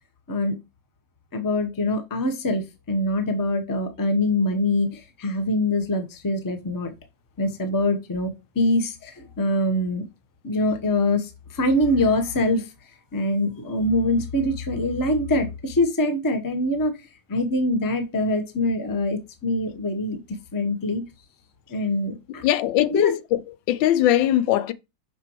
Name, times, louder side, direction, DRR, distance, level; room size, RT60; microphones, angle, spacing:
voice 1, 1.3-6.9 7.4-10.1 10.4-12.7 13.1-17.0 17.3-20.2 20.5-21.0 21.7-22.4 22.9-23.2, left 1 dB, 20° left, 0.6 m, -24 dB
voice 2, 22.4-23.2 23.7-24.7, left 12 dB, 80° left, 1.3 m, -20 dB
6.0 x 5.6 x 3.0 m
omnidirectional pair, 2.0 m